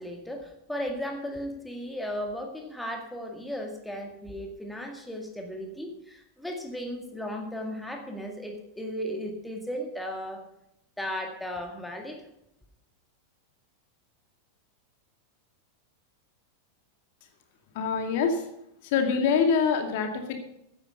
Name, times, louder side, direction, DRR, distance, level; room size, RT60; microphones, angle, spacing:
voice 1, 0.0-10.4 11.0-12.3, equal, 5° left, 3 dB, 2.0 m, -36 dB
voice 2, 17.7-18.4 18.8-20.4, left 6 dB, 50° left, 4 dB, 2.3 m, -25 dB
15.0 x 9.8 x 5.4 m, 0.81 s
figure-of-eight pair, 90°, 0 cm